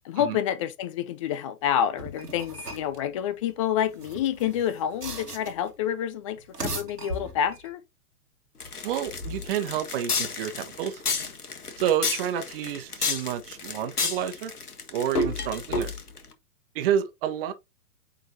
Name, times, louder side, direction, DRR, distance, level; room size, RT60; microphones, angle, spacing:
voice 1, 0.0-7.8, left 9 dB, 20° left, 0.5 m, -28 dB
sound 1, 2.0-3.0 3.9-5.7 6.4-7.7, right 1 dB, 85° right, 1.7 m, -37 dB
sound 2, 8.6-16.3, left 4 dB, 75° left, 1.4 m, -30 dB
voice 2, 8.8-11.0 11.8-14.5 14.9-15.9 16.7-17.5, right 10 dB, 35° right, 1.2 m, -29 dB
9.0 x 3.9 x 2.7 m
figure-of-eight pair, 110°, 46 cm